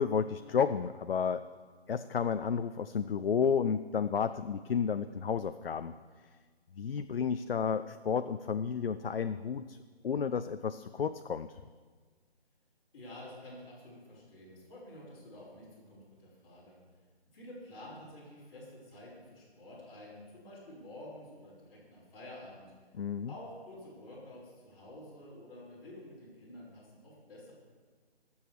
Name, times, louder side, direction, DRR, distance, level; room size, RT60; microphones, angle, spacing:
voice 1, 0.0-1.5 1.9-5.9 6.7-9.8 10.0-11.6 23.0-23.3, left 6 dB, 60° left, 11 dB, 0.4 m, -31 dB
voice 2, 12.9-16.8 17.3-22.7 23.3-27.5, left 1 dB, 20° left, -10 dB, 4.2 m, -50 dB
19.0 x 7.1 x 4.7 m, 1.5 s
figure-of-eight pair, 165°, 33 cm